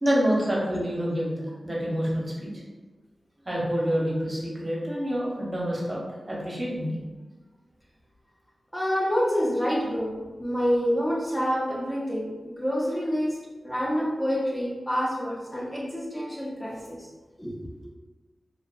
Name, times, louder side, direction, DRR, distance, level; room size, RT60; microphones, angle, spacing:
voice 1, 0.0-2.6 3.4-7.0, equal, 30° right, -5 dB, 0.8 m, -27 dB
voice 2, 8.7-17.1 17.4-17.6, equal, 15° left, -5 dB, 0.5 m, -27 dB
2.5 x 2.4 x 2.3 m, 1.2 s
cardioid pair, 50°, 0 cm